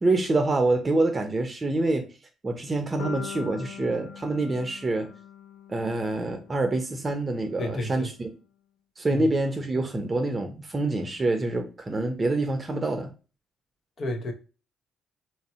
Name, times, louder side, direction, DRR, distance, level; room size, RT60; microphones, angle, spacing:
voice 1, 0.0-2.1 2.4-5.1 5.7-8.3 9.0-13.1, right 2 dB, 30° right, 0.7 m, -26 dB
sound 1, 3.0-7.1, left 9 dB, 90° left, 0.5 m, -42 dB
voice 2, 7.6-8.1 9.1-9.2 14.0-14.3, left 1 dB, 50° left, 0.9 m, -31 dB
3.1 x 2.7 x 4.2 m
cardioid pair, 90°, 0 cm